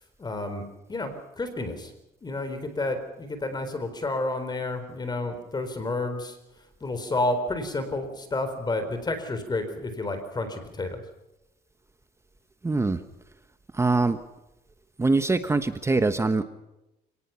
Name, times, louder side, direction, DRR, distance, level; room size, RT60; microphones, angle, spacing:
voice 1, 0.2-1.9 2.2-6.4 6.8-11.0, left 2 dB, 25° left, 9 dB, 4.0 m, -30 dB
voice 2, 12.6-13.0 13.7-14.2 15.0-16.4, right 3 dB, 15° right, 10 dB, 1.1 m, -23 dB
29.5 x 18.5 x 5.8 m, 0.92 s
cardioid pair, 110°, 17 cm